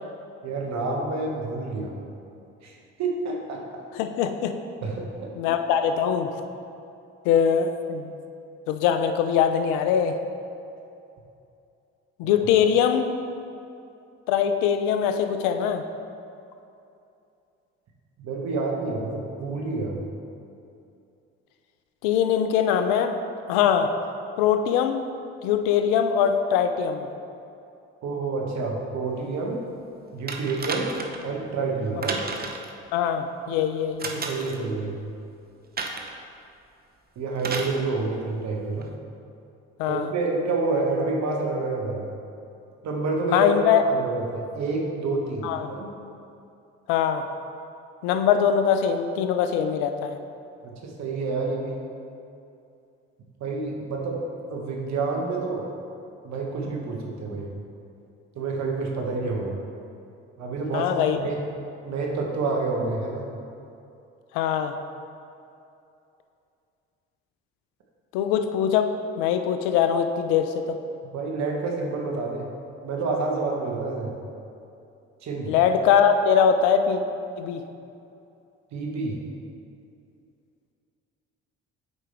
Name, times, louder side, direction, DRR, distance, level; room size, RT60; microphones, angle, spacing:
voice 1, 0.4-2.0 2.6-3.8 4.8-5.3 12.2-12.4 18.2-20.0 28.0-29.6 30.1-32.2 34.1-35.0 37.2-38.9 39.9-42.1 42.8-45.9 50.6-51.8 53.4-54.2 54.5-55.6 56.2-57.5 58.3-59.6 60.4-61.4 61.8-63.3 71.1-72.5 72.8-74.2 75.2-75.5 78.7-79.2, right 3 dB, 65° right, 0 dB, 1.3 m, -28 dB
voice 2, 3.9-4.5 5.4-6.3 7.2-8.1 8.7-10.2 12.2-13.0 14.3-15.8 22.0-23.2 23.5-23.9 24.4-25.0 25.4-27.1 32.9-34.3 39.8-40.1 43.3-43.8 45.4-45.7 46.9-47.2 48.0-50.2 60.7-61.2 64.3-64.8 68.1-70.7 75.5-77.0 77.4-77.6, left 8 dB, 80° left, 8 dB, 0.5 m, -22 dB
sound 1, 30.3-31.3 32.0-32.7 34.0-34.6 35.8-36.2 37.4-37.8 38.8-38.9, right 4 dB, 30° right, 0.8 m, -32 dB
8.2 x 4.9 x 3.4 m, 2.6 s
hypercardioid pair, 60°, 30 cm